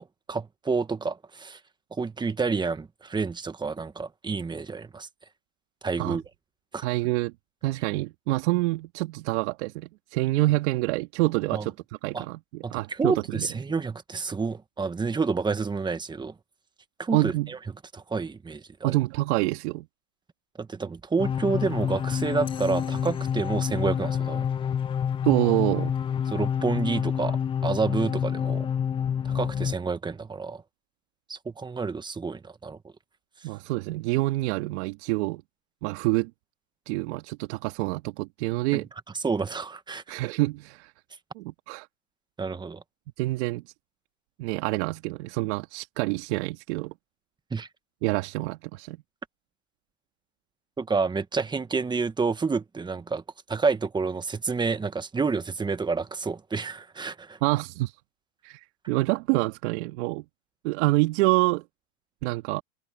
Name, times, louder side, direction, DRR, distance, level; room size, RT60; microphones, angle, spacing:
voice 1, 0.0-1.6 2.0-5.1 5.8-6.2 6.7-6.8 11.5-11.6 12.1-12.3 12.6-16.3 17.0-17.6 17.9-18.9 20.6-24.5 26.3-28.7 29.3-30.6 31.3-32.8 38.7-38.8 39.2-40.0 42.4-42.8 47.5-47.7 50.8-53.2 53.5-57.4, right 4 dB, 10° right, 1.6 m, -29 dB
voice 2, 6.8-7.3 7.6-11.7 12.0-13.5 17.1-17.5 18.8-19.9 25.2-25.9 33.4-35.4 35.8-36.3 36.9-38.9 40.1-40.9 41.4-41.9 43.2-43.6 44.4-46.9 48.0-49.0 57.4-57.9 58.4-60.2 60.6-61.6 62.2-62.6, right 21 dB, 55° right, 2.4 m, -27 dB
sound 1, 21.2-29.7, left 8 dB, 15° left, 0.5 m, -28 dB
hypercardioid pair, 120°, 40 cm